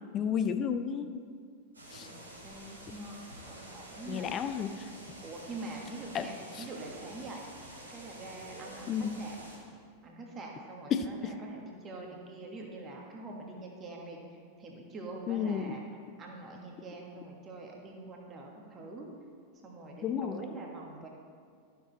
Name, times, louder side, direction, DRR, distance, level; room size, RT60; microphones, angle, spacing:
voice 1, 0.1-1.2 1.9-2.1 4.1-4.9 6.1-6.3 6.5-6.7 8.9-9.2 10.9-11.4 15.3-15.8 20.0-20.4, left 7 dB, 30° left, 9 dB, 0.5 m, -32 dB
sound 1, 1.7-9.6, right 1 dB, 80° right, 2.0 m, -49 dB
voice 2, 2.4-4.3 5.2-7.4 7.9-9.4 10.0-14.2 14.6-15.8 16.2-19.1 19.6-21.1, right 2 dB, 25° right, 0 dB, 1.4 m, -44 dB
12.5 x 6.9 x 4.0 m, 2.1 s
figure-of-eight pair, 90°, 0 cm